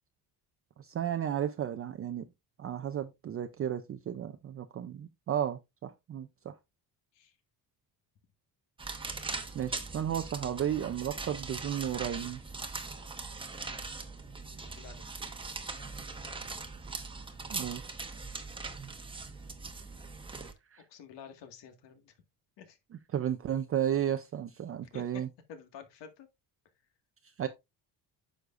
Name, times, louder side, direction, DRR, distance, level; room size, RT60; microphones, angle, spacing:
voice 1, 0.8-2.3 2.6-6.5 9.5-12.4 17.5-17.8 20.7-20.8 23.1-25.3 27.4-27.5, right 10 dB, 35° right, 0.5 m, -33 dB
sound 1, 8.8-20.5, right 3 dB, 10° right, 0.9 m, -41 dB
voice 2, 14.5-15.2 20.9-22.1 22.6-22.8 24.9-25.2 25.5-26.3, left 7 dB, 75° left, 1.9 m, -50 dB
9.5 x 6.5 x 2.5 m
cardioid pair, 160°, 43 cm